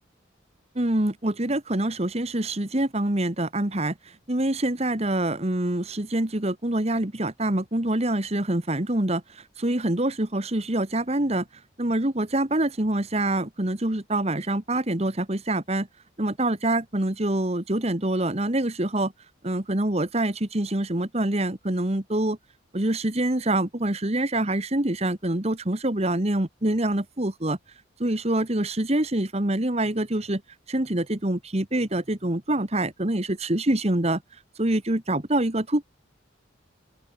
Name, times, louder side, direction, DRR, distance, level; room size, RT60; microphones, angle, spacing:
voice 1, 0.8-4.0 4.3-11.5 11.8-15.9 16.2-19.1 19.4-22.4 22.7-27.6 28.0-30.4 30.7-34.2 34.6-35.9, right 1 dB, 35° right, 1.7 m, -25 dB
open air
head